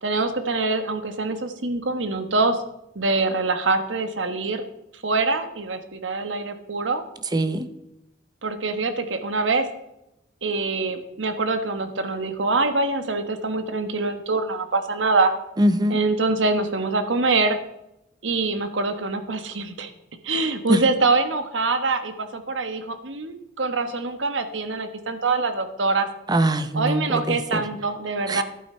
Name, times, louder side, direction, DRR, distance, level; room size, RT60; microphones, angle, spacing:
voice 1, 0.0-2.6 2.9-4.6 5.0-7.0 8.4-9.7 10.4-15.3 15.9-17.6 18.2-19.9 20.2-26.1 26.7-28.4, right 3 dB, 85° right, 9 dB, 1.3 m, -24 dB
voice 2, 7.3-7.7 15.6-16.0 20.7-20.8 26.3-27.6 28.3-28.4, right 1 dB, 20° right, 11 dB, 0.7 m, -22 dB
11.5 x 8.9 x 4.4 m, 0.86 s
head